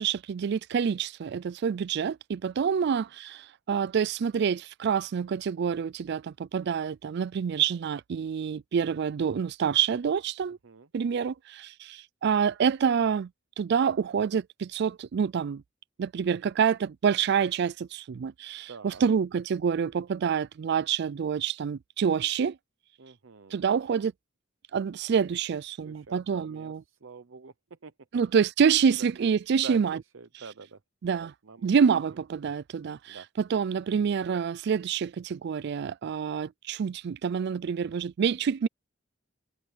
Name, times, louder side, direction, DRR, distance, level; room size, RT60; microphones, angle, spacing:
voice 1, 0.0-10.6 10.9-13.3 13.6-15.6 16.0-22.6 23.5-24.1 24.7-26.8 28.1-30.0 31.0-31.3 31.6-38.7, right 7 dB, 60° right, 0.4 m, -27 dB
voice 2, 18.7-19.0 23.0-23.6 25.8-27.9 29.0-29.1 29.6-30.8 31.2-31.7 33.1-33.3, right 4 dB, 80° right, 0.8 m, -46 dB
head